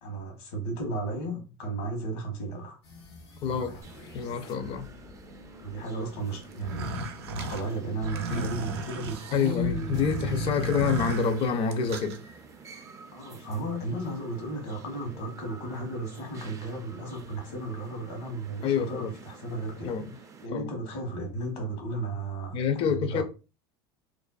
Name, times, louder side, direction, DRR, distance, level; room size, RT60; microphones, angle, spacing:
voice 1, 0.0-2.8 3.5-3.8 5.6-6.9 7.3-10.5 13.1-19.9 20.4-23.2, right 2 dB, 70° left, 1.0 m, -34 dB
sound 1, 2.8-13.8, left 3 dB, 85° left, 0.8 m, -52 dB
voice 2, 3.4-3.8 4.1-4.9 8.3-8.5 9.3-12.2 18.6-19.1 19.8-20.1 20.5-20.7 22.5-23.2, left 6 dB, 45° left, 0.5 m, -27 dB
sound 2, 3.8-20.5, right 5 dB, 25° right, 0.4 m, -50 dB
sound 3, 6.5-12.2, right 2 dB, 80° right, 0.4 m, -35 dB
2.4 x 2.2 x 2.3 m
hypercardioid pair, 90°, 13 cm